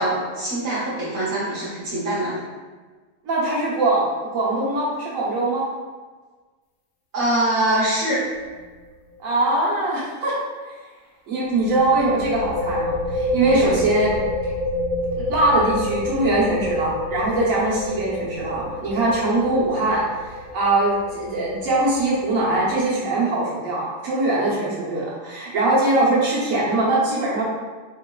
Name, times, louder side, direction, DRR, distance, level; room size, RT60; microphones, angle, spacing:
voice 1, 0.0-2.4 7.1-8.3 13.5-13.7, right 1 dB, 60° right, -9 dB, 1.1 m, -23 dB
voice 2, 3.2-4.1 4.3-5.6 9.2-10.3 11.3-14.1 15.3-20.0 20.5-27.4, right 2 dB, 75° right, -6 dB, 1.3 m, -21 dB
sound 1, 8.3-8.6 8.9-9.0 11.4-22.8, left 1 dB, 70° left, 0.9 m, -28 dB
3.9 x 3.0 x 2.3 m, 1.4 s
omnidirectional pair, 1.4 m